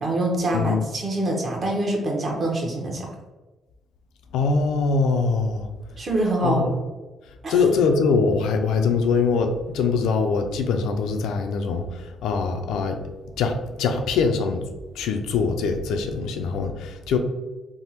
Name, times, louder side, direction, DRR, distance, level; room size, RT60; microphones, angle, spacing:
voice 1, 0.0-3.1 6.0-6.8 7.4-7.6, right 1 dB, 45° right, 0 dB, 0.8 m, -25 dB
voice 2, 4.3-5.7 6.4-6.7 7.5-13.0 13.4-14.6 15.0-17.2, left 4 dB, 85° left, 6 dB, 0.3 m, -23 dB
3.4 x 2.0 x 2.9 m, 1.2 s
cardioid pair, 90°, 0 cm